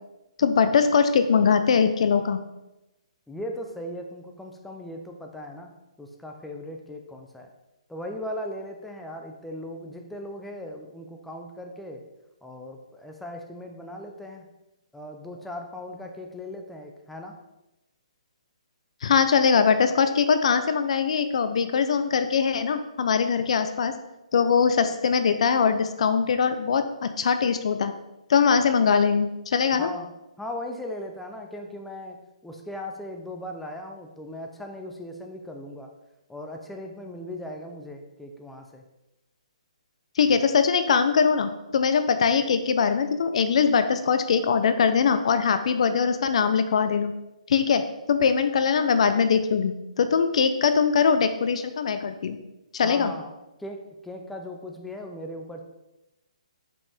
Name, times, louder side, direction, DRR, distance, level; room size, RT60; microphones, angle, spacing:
voice 1, 0.4-2.4 19.0-23.9 24.3-27.9 28.3-29.9 40.2-47.1 47.5-47.8 48.1-52.4 52.7-53.1, left 6 dB, 60° left, 10 dB, 0.6 m, -22 dB
voice 2, 3.3-5.7 6.0-7.5 7.9-12.0 12.4-14.5 14.9-17.4 29.7-30.1 30.4-35.9 36.3-38.8 52.8-53.3 53.6-55.6, left 1 dB, 5° left, 2 dB, 0.6 m, -38 dB
5.4 x 5.2 x 3.5 m, 0.94 s
hypercardioid pair, 140°, 4 cm